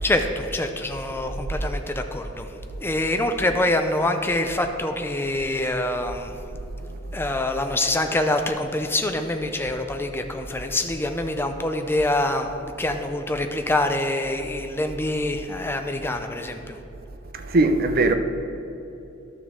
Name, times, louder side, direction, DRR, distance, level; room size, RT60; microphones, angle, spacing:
voice 1, 0.0-2.5 2.8-6.3 7.1-16.8, left 1 dB, 10° left, 0.5 m, -25 dB
voice 2, 17.3-18.1, right 2 dB, 50° right, 0.5 m, -20 dB
12.0 x 6.2 x 3.6 m
head